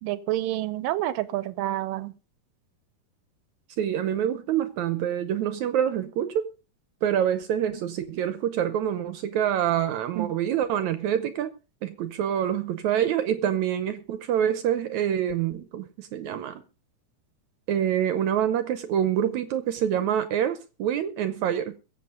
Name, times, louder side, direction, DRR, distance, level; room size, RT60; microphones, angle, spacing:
voice 1, 0.0-2.1 10.2-10.3, right 15 dB, 90° right, 2.5 m, -28 dB
voice 2, 3.8-6.5 7.0-11.5 11.8-16.6 17.7-21.8, right 10 dB, 75° right, 2.0 m, -26 dB
22.5 x 7.6 x 3.8 m
omnidirectional pair, 3.8 m